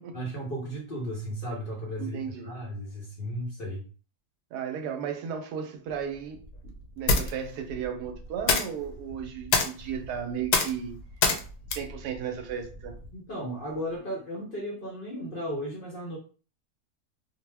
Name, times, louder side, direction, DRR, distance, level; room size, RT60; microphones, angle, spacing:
voice 1, 0.1-3.8 13.1-16.2, equal, 50° left, 0.6 m, -35 dB
voice 2, 2.0-2.6 4.5-11.0 11.7-13.0, right 8 dB, 80° right, 1.1 m, -35 dB
sound 1, 5.9-13.1, left 4 dB, 75° left, 1.1 m, -30 dB
2.6 x 2.0 x 3.3 m
omnidirectional pair, 1.7 m